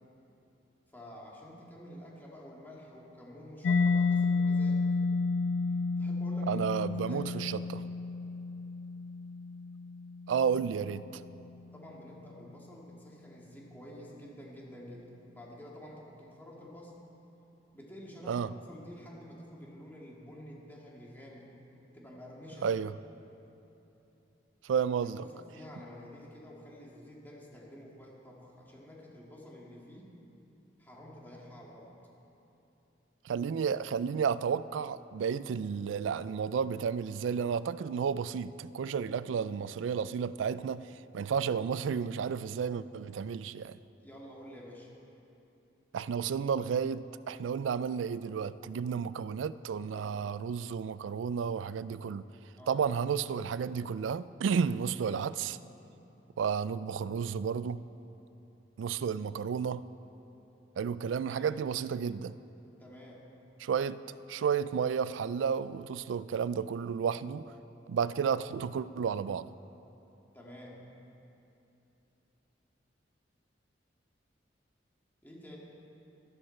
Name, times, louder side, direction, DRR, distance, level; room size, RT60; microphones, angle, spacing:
voice 1, 0.9-4.9 6.0-7.4 11.7-17.0 17.7-21.5 21.9-22.8 24.8-30.1 30.8-31.9 44.0-44.9 49.9-50.3 52.6-52.9 55.0-55.2 61.1-61.5 62.8-63.3 70.3-70.8 75.2-75.6, equal, 10° left, -4 dB, 1.9 m, -49 dB
Mallet percussion, 3.6-11.1, left 4 dB, 80° left, 0.3 m, -31 dB
voice 2, 6.5-7.8 10.3-11.2 18.3-18.5 22.6-22.9 24.6-25.2 33.2-40.8 41.1-43.8 45.9-52.3 52.7-55.6 56.4-57.8 58.8-59.8 60.8-62.3 63.6-64.0 64.3-67.4 67.9-69.6, right 6 dB, 90° right, 16 dB, 0.3 m, -32 dB
13.0 x 12.5 x 4.4 m, 3.0 s
head